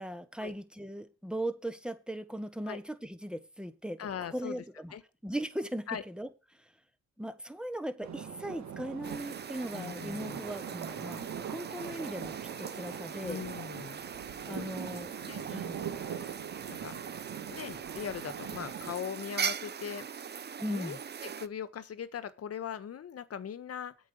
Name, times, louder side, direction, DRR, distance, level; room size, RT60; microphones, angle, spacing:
voice 1, 0.0-4.1 4.3-4.9 5.2-6.3 6.6-6.7 7.2-13.4 14.4-15.1 15.5-15.8 20.6-21.0, right 1 dB, 5° right, 1.4 m, -38 dB
voice 2, 4.0-4.6 4.9-5.0 5.9-6.0 9.7-10.4 13.2-14.0 14.3-14.8 15.2-15.5 16.2-16.3 16.7-16.9 17.4-20.1 20.7-21.0 21.2-23.9, left 8 dB, 55° left, 1.4 m, -40 dB
sound 1, 8.0-18.9, right 8 dB, 65° right, 2.0 m, -42 dB
sound 2, 9.0-21.5, right 7 dB, 35° right, 0.7 m, -41 dB
8.5 x 6.1 x 6.7 m
cardioid pair, 90°, 30 cm